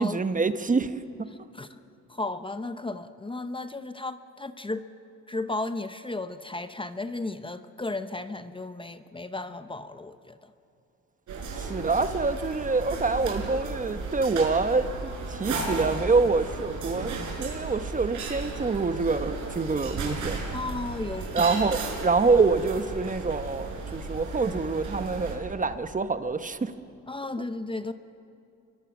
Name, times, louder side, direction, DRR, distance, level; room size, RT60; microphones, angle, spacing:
voice 1, 0.0-1.3 11.6-20.4 21.3-26.7, right 4 dB, 25° right, 10 dB, 1.0 m, -26 dB
voice 2, 1.3-1.8 2.1-4.8 5.3-10.5 20.5-21.5 27.1-27.9, left 2 dB, 15° left, 10 dB, 0.9 m, -34 dB
sound 1, 11.3-25.4, right 3 dB, 75° right, 5.5 m, -35 dB
26.0 x 23.5 x 6.2 m, 2.7 s
cardioid pair, 90°, 30 cm